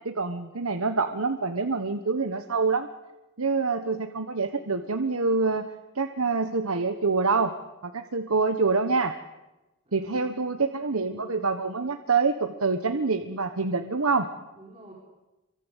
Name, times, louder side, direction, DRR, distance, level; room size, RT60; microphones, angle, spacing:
voice 1, 0.0-2.9 3.4-7.5 7.8-9.1 9.9-14.3, right 4 dB, 90° right, 8 dB, 1.3 m, -26 dB
voice 2, 9.8-11.0 14.5-14.9, right 1 dB, 25° right, -2 dB, 5.1 m, -52 dB
27.5 x 24.0 x 8.3 m, 1.1 s
head